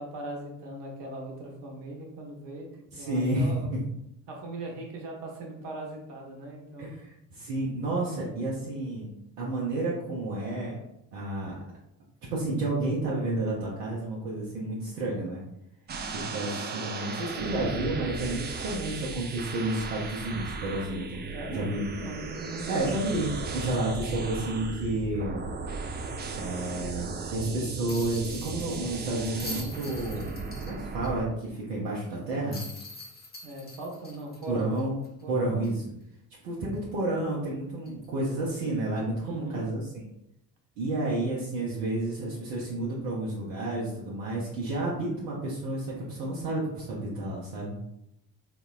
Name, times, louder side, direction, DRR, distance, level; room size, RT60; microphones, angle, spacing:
voice 1, 0.0-3.7 4.3-6.9 21.3-23.1 33.4-34.8 35.2-35.6 39.2-39.6, right 2 dB, 65° right, 1 dB, 0.9 m, -40 dB
voice 2, 2.9-3.8 6.8-10.8 11.1-11.5 12.3-15.4 16.1-21.8 22.7-25.4 26.3-30.3 30.6-32.6 34.5-35.0 35.3-35.8 36.4-39.8 40.8-47.8, right 2 dB, 85° right, -5 dB, 0.6 m, -31 dB
sound 1, 15.9-31.2, right 4 dB, 25° right, 0.3 m, -36 dB
sound 2, 27.9-31.1 31.4-31.5 32.5-35.2 35.6-35.7 37.8-38.0, left 2 dB, 20° left, 0.7 m, -44 dB
3.5 x 2.0 x 2.3 m, 0.81 s
hypercardioid pair, 45°, 47 cm